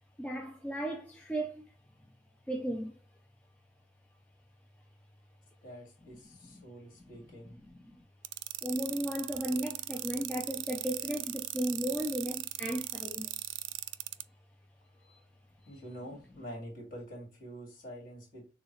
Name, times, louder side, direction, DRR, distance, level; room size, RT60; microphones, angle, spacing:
voice 1, 0.2-1.6 2.5-2.9 6.4-6.6 7.6-8.0 8.6-13.3 15.1-15.2, right 1 dB, 5° left, 0.4 m, -35 dB
voice 2, 5.6-7.6 15.0-15.1 15.7-18.5, equal, 45° left, 2.4 m, -46 dB
sound 1, 8.2-14.2, right 17 dB, 70° right, 0.3 m, -38 dB
6.6 x 2.4 x 3.0 m
head